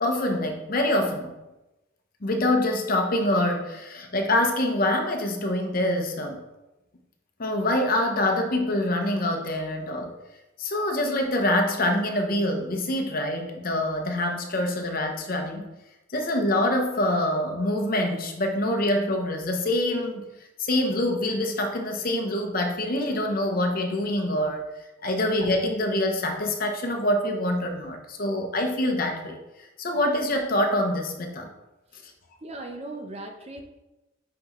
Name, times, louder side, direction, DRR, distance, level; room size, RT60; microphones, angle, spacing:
voice 1, 0.0-1.4 2.2-6.4 7.4-10.1 10.6-15.7 16.1-20.2 20.6-24.6 25.0-29.4 29.8-31.5, left 1 dB, 45° left, 4 dB, 0.8 m, -25 dB
voice 2, 32.4-33.6, right 2 dB, 30° right, 3 dB, 0.6 m, -37 dB
6.0 x 5.4 x 3.0 m, 0.99 s
head